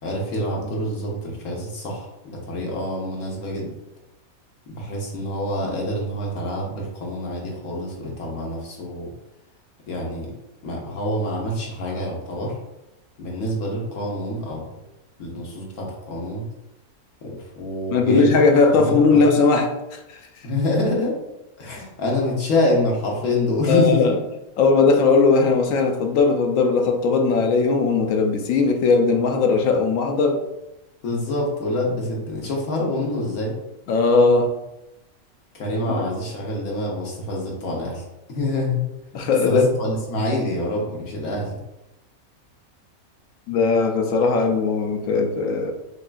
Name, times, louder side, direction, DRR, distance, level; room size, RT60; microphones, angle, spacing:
voice 1, 0.0-3.7 4.7-9.1 9.9-10.3 10.6-12.6 13.2-14.8 15.2-16.4 17.2-18.4 18.7-19.5 20.4-21.2 21.6-24.1 31.0-33.6 35.5-38.8 39.4-41.6, left 1 dB, 85° left, -2 dB, 1.4 m, -26 dB
voice 2, 17.9-20.2 23.7-24.2 24.6-30.4 33.9-34.5 36.0-36.1 39.1-39.7 43.5-45.7, left 4 dB, 70° left, 3 dB, 0.9 m, -18 dB
6.4 x 2.3 x 2.4 m, 0.92 s
omnidirectional pair, 1.5 m